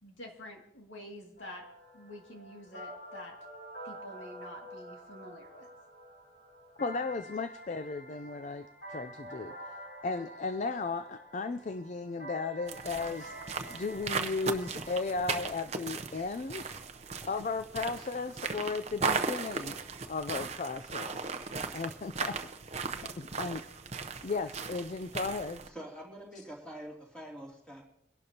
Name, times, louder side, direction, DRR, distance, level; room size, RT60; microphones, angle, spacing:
voice 1, 0.0-3.4 3.8-5.7, left 1 dB, 85° left, 1 dB, 2.3 m, -48 dB
sound 1, 1.4-17.1, right 1 dB, 65° left, 6.3 m, -48 dB
voice 2, 6.8-9.7 10.0-13.4 13.7-16.7 17.2-19.7 20.1-21.4 21.7-22.4 23.2-23.6 24.2-25.6, left 4 dB, 40° left, 11 dB, 0.4 m, -35 dB
sound 2, 12.7-25.7, right 5 dB, 35° right, 0.7 m, -37 dB
voice 3, 25.6-27.8, right 1 dB, 5° left, -2 dB, 2.7 m, -45 dB
23.0 x 11.5 x 2.9 m, 0.75 s
head